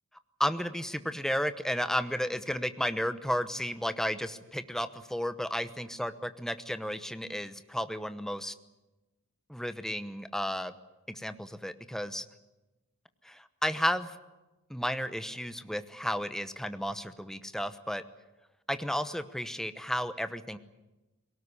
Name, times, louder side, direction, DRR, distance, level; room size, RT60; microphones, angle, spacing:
voice 1, 0.4-8.5 9.5-10.7 11.1-12.2 13.2-14.1 14.7-18.0 18.7-20.6, equal, ahead, 11 dB, 0.9 m, -33 dB
22.0 x 18.5 x 9.8 m, 1.1 s
head